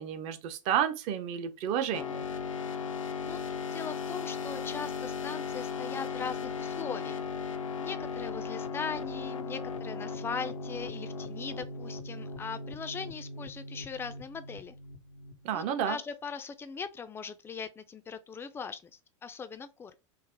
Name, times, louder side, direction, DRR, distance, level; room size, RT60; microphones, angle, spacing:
voice 1, 0.0-2.3 15.4-16.0, right 9 dB, 40° right, 0.6 m, -31 dB
sound 1, 1.9-15.5, left 5 dB, 80° left, 0.4 m, -37 dB
voice 2, 3.7-7.3 7.8-14.7 15.5-18.9 19.2-19.9, left 6 dB, 15° left, 0.3 m, -40 dB
3.3 x 2.0 x 3.6 m
figure-of-eight pair, 85°, 17 cm